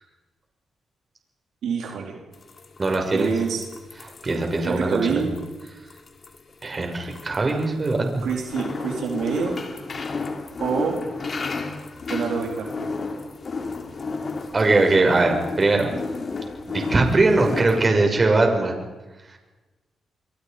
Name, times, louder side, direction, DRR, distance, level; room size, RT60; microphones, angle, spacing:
voice 1, 1.6-2.2 3.1-3.6 4.6-5.3 8.2-9.6 10.6-11.0 12.1-12.9, right 6 dB, 80° right, 1 dB, 4.1 m, -26 dB
sound 1, 2.3-17.9, left 4 dB, 45° left, 3.5 m, -33 dB
voice 2, 2.8-3.3 4.2-5.2 6.6-8.2 14.5-15.9 16.7-18.8, right 2 dB, 35° right, 3 dB, 6.6 m, -20 dB
29.5 x 23.0 x 5.3 m, 1.2 s
cardioid pair, 80°, 0 cm